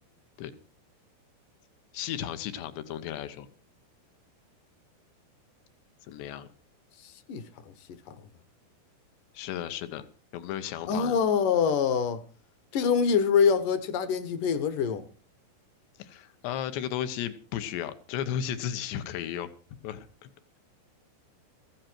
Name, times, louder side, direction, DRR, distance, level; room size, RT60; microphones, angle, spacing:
voice 1, 1.9-3.5 6.1-6.5 9.3-10.1 10.3-11.2 16.0-19.5 19.8-20.3, left 10 dB, 90° left, 3.3 m, -34 dB
voice 2, 7.3-7.7 8.1-8.2 10.9-12.2 12.7-15.0, left 6 dB, 70° left, 2.2 m, -25 dB
16.0 x 14.5 x 4.5 m
omnidirectional pair, 4.8 m